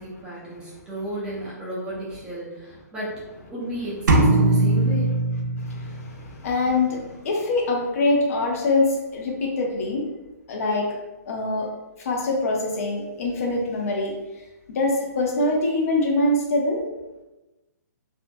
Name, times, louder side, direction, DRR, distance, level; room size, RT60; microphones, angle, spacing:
voice 1, 0.0-3.1 3.5-5.1, right 1 dB, 10° right, -9 dB, 0.5 m, -33 dB
sound 1, 4.1-6.1, right 2 dB, 85° right, 0.5 m, -20 dB
voice 2, 5.6-10.1 10.5-10.9 11.2-11.7 12.0-14.1 14.7-16.8, left 2 dB, 50° left, 0 dB, 0.6 m, -24 dB
2.6 x 2.1 x 2.5 m, 1.0 s
hypercardioid pair, 160°, 10 cm